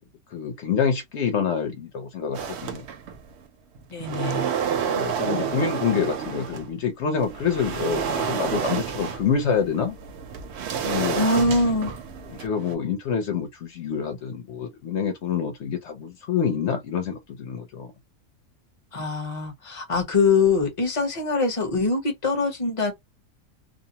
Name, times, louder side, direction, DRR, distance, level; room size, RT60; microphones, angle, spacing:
voice 1, 0.3-2.8 4.8-10.0 10.8-11.3 12.3-17.9, left 7 dB, 60° left, 0.8 m, -27 dB
sound 1, 2.3-3.3 3.8-6.7 7.2-12.8, right 7 dB, 65° right, 0.7 m, -29 dB
voice 2, 3.9-4.5 5.2-5.6 11.2-11.9 18.9-22.9, left 3 dB, 30° left, 0.6 m, -23 dB
2.5 x 2.0 x 2.7 m
omnidirectional pair, 1.5 m